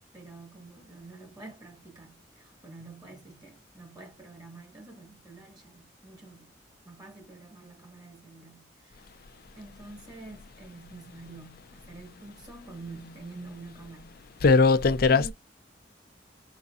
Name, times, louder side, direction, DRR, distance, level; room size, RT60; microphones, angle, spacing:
voice 1, 0.1-6.5 6.8-9.1 9.5-14.2 15.1-15.3, right 3 dB, 25° right, 1.4 m, -47 dB
voice 2, 14.4-15.3, left 4 dB, 55° left, 0.5 m, -19 dB
4.1 x 3.7 x 2.3 m
head